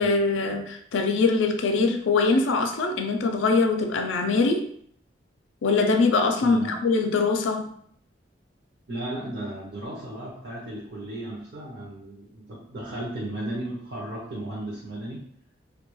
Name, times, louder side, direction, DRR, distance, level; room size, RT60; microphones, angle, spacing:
voice 1, 0.0-4.7 5.6-7.7, left 3 dB, 85° left, 5 dB, 0.4 m, -23 dB
voice 2, 6.4-6.8 8.9-15.3, right 1 dB, 60° right, -5 dB, 0.6 m, -35 dB
2.2 x 2.2 x 3.0 m, 0.64 s
head